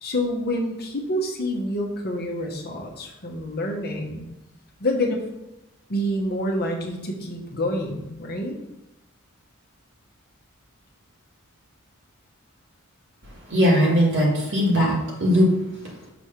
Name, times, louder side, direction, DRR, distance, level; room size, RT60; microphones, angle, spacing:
voice 1, 0.0-4.3 4.8-5.3 5.9-8.6, left 1 dB, 45° left, 1 dB, 1.0 m, -27 dB
voice 2, 13.4-16.1, equal, 60° right, -2 dB, 1.7 m, -20 dB
6.0 x 3.2 x 5.7 m, 0.93 s
head